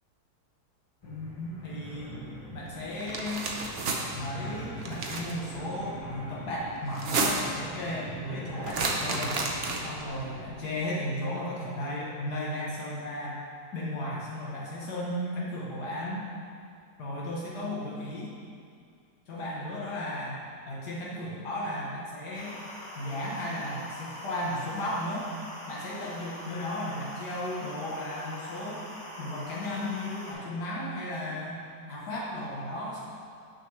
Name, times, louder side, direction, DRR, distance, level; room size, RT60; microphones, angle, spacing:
voice 1, 1.0-2.2 2.5-3.5 4.1-9.4 9.8-13.4 13.7-16.3 17.0-18.3 19.3-20.4 20.7-22.6 23.0-25.3 25.7-28.8 29.2-31.6 31.9-33.0, left 1 dB, 80° left, -6 dB, 1.6 m, -35 dB
sound 1, 1.0-10.4, right 1 dB, 25° left, 0.6 m, -43 dB
sound 2, 3.0-4.0 4.8-5.3 6.9-7.6 8.6-10.0, right 3 dB, 55° right, 0.7 m, -30 dB
sound 3, 22.3-30.3, equal, 10° left, 1.4 m, -43 dB
7.0 x 6.5 x 3.1 m, 2.3 s
omnidirectional pair, 1.7 m